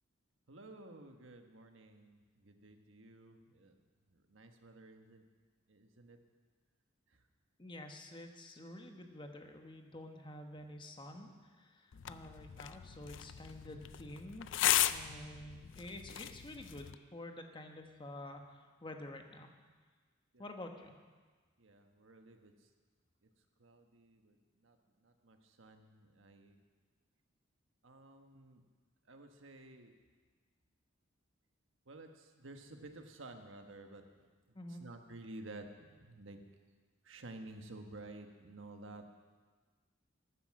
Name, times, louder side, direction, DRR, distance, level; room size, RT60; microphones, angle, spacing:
voice 1, 0.5-3.8 4.1-5.2 5.7-6.2 7.1-7.2 20.3-20.5 21.6-22.7 23.6-26.6 27.8-28.6 29.1-29.9 31.9-36.4 37.0-39.1, right 2 dB, 80° right, 5 dB, 1.3 m, -53 dB
voice 2, 7.6-14.6 14.9-19.5 20.4-20.9 34.5-34.8, left 1 dB, 25° left, 4 dB, 1.2 m, -49 dB
sound 1, 11.9-16.9, left 12 dB, 65° left, 0.4 m, -36 dB
12.5 x 9.3 x 7.5 m, 1.5 s
head